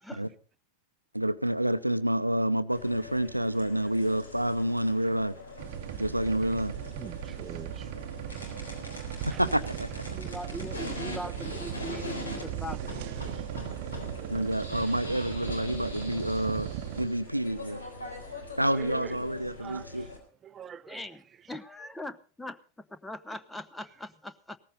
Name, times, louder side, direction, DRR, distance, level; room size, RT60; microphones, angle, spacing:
voice 1, 1.1-5.4 6.0-6.7 9.3-10.2 14.3-17.8 18.6-20.1, right 1 dB, 90° right, 0.6 m, -28 dB
sound 1, 2.7-20.2, left 2 dB, 75° left, 3.7 m, -42 dB
sound 2, 5.6-17.1, right 14 dB, 50° right, 0.8 m, -38 dB
voice 2, 6.9-7.9 9.3-9.4 10.2-10.3 13.2-13.9 14.2-14.5 18.7-19.2 19.6-20.0 20.4-21.0, right 8 dB, 25° right, 0.7 m, -44 dB
voice 3, 10.1-13.2 20.9-24.6, left 1 dB, 5° left, 0.8 m, -41 dB
17.5 x 14.5 x 4.0 m
figure-of-eight pair, 90°, 0 cm